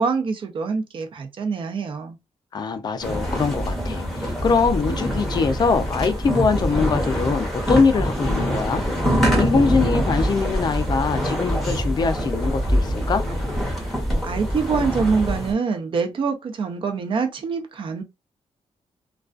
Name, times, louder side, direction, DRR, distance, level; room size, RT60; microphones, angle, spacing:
voice 1, 0.0-2.2 14.2-18.0, right 5 dB, 50° right, 0.5 m, -25 dB
voice 2, 2.5-8.8 9.4-13.2, left 5 dB, 40° left, 0.4 m, -22 dB
sound 1, 3.0-15.5, equal, 5° left, 0.8 m, -24 dB
2.3 x 2.3 x 2.4 m
wide cardioid pair, 150°, 11 cm